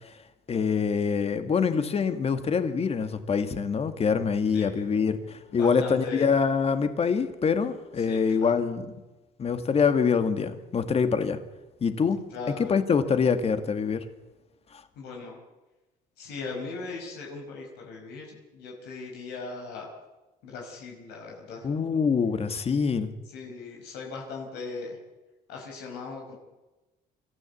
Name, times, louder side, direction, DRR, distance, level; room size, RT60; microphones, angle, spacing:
voice 1, 0.5-8.9 9.4-11.4 11.8-12.2 12.6-14.0 21.6-23.1, left 6 dB, 35° left, 9 dB, 2.0 m, -25 dB
voice 2, 4.5-4.9 5.5-6.3 8.0-8.5 12.3-12.7 15.0-15.4 16.2-19.9 20.4-21.7 23.3-25.0 25.5-26.3, left 4 dB, 80° left, 0 dB, 5.3 m, -39 dB
25.5 x 14.0 x 8.5 m, 1.1 s
cardioid pair, 110°, 17 cm